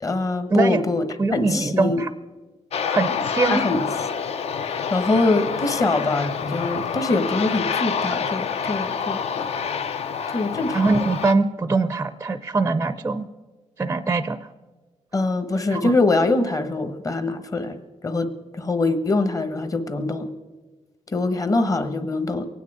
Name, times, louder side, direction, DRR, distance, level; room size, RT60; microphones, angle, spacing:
voice 1, 0.0-1.0 1.3-2.1 3.4-4.1 4.6-9.2 10.3-10.9 15.1-20.3 21.1-22.4, left 2 dB, 30° left, 9 dB, 1.1 m, -23 dB
voice 2, 1.2-2.1 2.8-3.6 10.7-13.3 13.8-14.4 15.7-15.9, right 3 dB, 20° right, 12 dB, 0.5 m, -22 dB
Aircraft, 2.7-11.3, left 6 dB, 60° left, 0.6 m, -27 dB
24.0 x 9.3 x 4.8 m, 1.3 s
cardioid pair, 130°, 12 cm